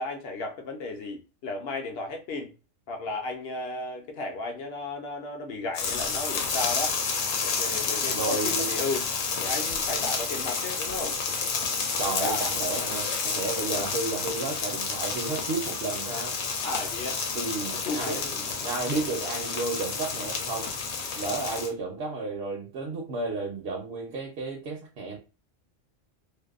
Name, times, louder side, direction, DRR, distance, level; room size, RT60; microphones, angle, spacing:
voice 1, 0.0-2.5 2.9-7.0 7.4-9.0 9.4-11.2 12.0-12.9 16.6-17.3 17.7-18.4, left 3 dB, 60° left, 0.7 m, -34 dB
sound 1, 5.7-21.7, left 5 dB, 85° left, 1.0 m, -30 dB
voice 2, 8.1-8.7 12.0-16.4 17.3-20.7 21.2-25.2, right 3 dB, 60° right, 0.8 m, -32 dB
2.6 x 2.0 x 2.3 m
omnidirectional pair, 1.3 m